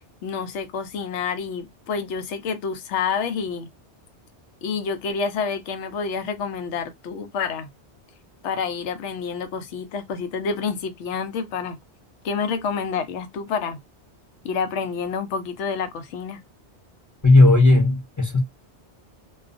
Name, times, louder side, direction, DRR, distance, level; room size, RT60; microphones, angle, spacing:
voice 1, 0.2-3.7 4.6-7.7 8.4-11.8 12.2-13.8 14.4-16.4, left 5 dB, 85° left, 0.9 m, -28 dB
voice 2, 17.2-18.4, left 2 dB, 20° left, 0.5 m, -15 dB
2.3 x 2.3 x 2.4 m
omnidirectional pair, 1.2 m